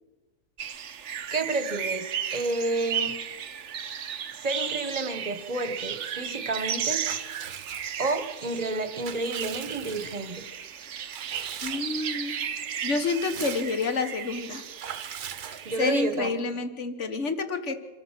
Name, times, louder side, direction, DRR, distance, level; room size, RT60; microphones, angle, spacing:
sound 1, 0.6-15.9, right 8 dB, 55° right, 1.0 m, -35 dB
voice 1, 1.3-3.2 4.3-7.0 8.0-10.5 15.6-16.6, right 2 dB, 25° right, 9 dB, 1.3 m, -30 dB
Water / Bathtub (filling or washing) / Liquid, 7.0-8.3 8.7-10.5 11.1-12.1 12.4-12.5 12.8-14.0 14.8-16.0, right 8 dB, 70° right, 1.5 m, -41 dB
voice 2, 11.6-12.5 12.8-14.6 15.8-17.8, left 4 dB, 50° left, 8 dB, 1.6 m, -28 dB
26.0 x 13.5 x 7.5 m, 1.2 s
omnidirectional pair, 1.7 m